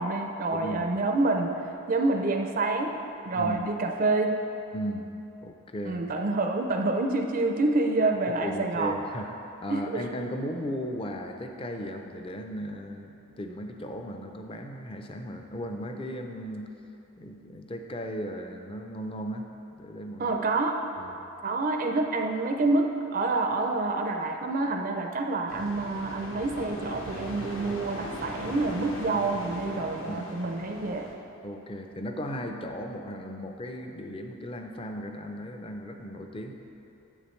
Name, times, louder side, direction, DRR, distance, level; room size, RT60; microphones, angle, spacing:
voice 1, 0.0-1.5 1.9-2.9 3.3-4.4 5.9-9.0 9.7-10.0 20.2-20.8 21.4-31.1, right 2 dB, 40° right, 3 dB, 0.4 m, -27 dB
voice 2, 0.5-1.0 3.3-3.7 4.7-5.1 5.4-6.0 8.3-9.3 9.6-16.7 17.2-19.5 19.7-20.4 21.0-21.2 30.1-30.3 31.4-36.5, equal, 25° left, 4 dB, 0.5 m, -36 dB
sound 1, 25.5-31.1, equal, 65° left, 1.0 m, -40 dB
9.9 x 8.2 x 3.2 m, 2.9 s
head